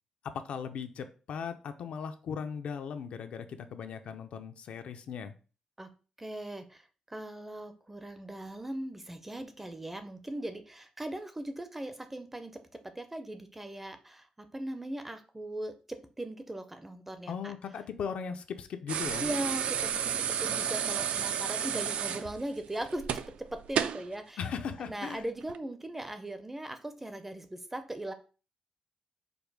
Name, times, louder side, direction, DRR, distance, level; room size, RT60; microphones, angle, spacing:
voice 1, 0.3-5.3 17.3-19.3 24.4-25.3, left 6 dB, 65° left, 8 dB, 0.5 m, -38 dB
voice 2, 6.2-17.5 19.2-24.4 24.9-28.1, right 1 dB, 10° right, 8 dB, 0.4 m, -39 dB
sound 1, 18.9-24.1 25.4-25.6, right 8 dB, 75° right, 0.3 m, -32 dB
5.2 x 2.1 x 4.6 m, 0.36 s
wide cardioid pair, 160°, 2 cm